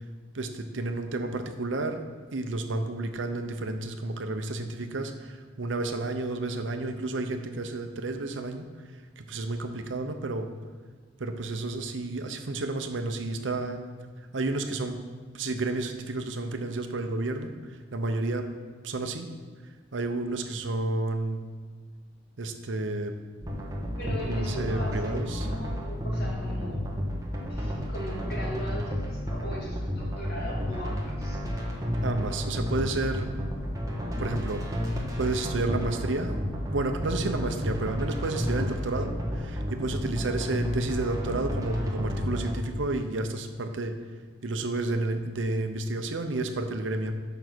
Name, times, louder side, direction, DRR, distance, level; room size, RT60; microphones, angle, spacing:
voice 1, 0.3-2.0 2.3-8.7 9.2-10.5 11.2-13.8 14.3-15.0 15.3-18.5 18.8-19.3 19.9-21.4 22.4-23.1 24.0-25.5 32.0-33.3 34.2-34.6 35.2-36.4 36.7-43.9 44.4-47.1, right 2 dB, 75° right, 7 dB, 0.7 m, -31 dB
sound 1, 23.4-42.6, equal, 15° right, 1.2 m, -31 dB
voice 2, 24.0-26.8 27.5-31.4, equal, 55° left, -4 dB, 2.5 m, -39 dB
7.1 x 5.5 x 6.1 m, 1.5 s
head